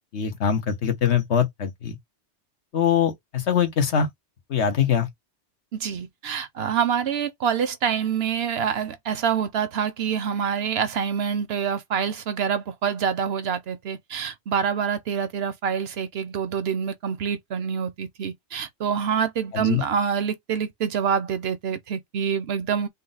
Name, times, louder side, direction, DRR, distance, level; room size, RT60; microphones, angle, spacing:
voice 1, 0.1-2.0 2.7-4.1 4.5-5.1 19.5-19.8, left 8 dB, 70° left, 1.3 m, -23 dB
voice 2, 5.7-22.9, right 7 dB, 65° right, 0.9 m, -26 dB
5.3 x 2.0 x 3.9 m
omnidirectional pair, 1.2 m